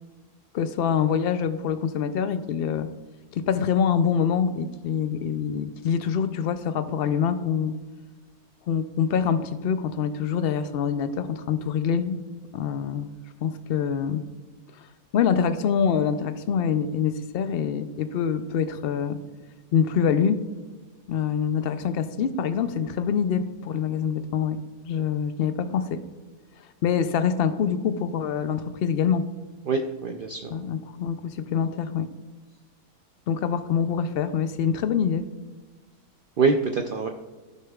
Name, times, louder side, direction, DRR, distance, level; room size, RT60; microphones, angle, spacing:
voice 1, 0.5-2.9 3.3-7.8 8.7-12.2 12.5-13.1 13.4-14.2 14.7-14.9 15.1-19.2 19.7-20.4 21.1-24.6 24.8-26.0 26.8-29.2 30.5-32.1 33.3-35.2, left 7 dB, 80° left, 10 dB, 0.5 m, -25 dB
voice 2, 29.7-30.6 36.4-37.1, right 4 dB, 75° right, 4 dB, 0.4 m, -25 dB
14.5 x 6.6 x 2.4 m, 1.3 s
omnidirectional pair, 1.6 m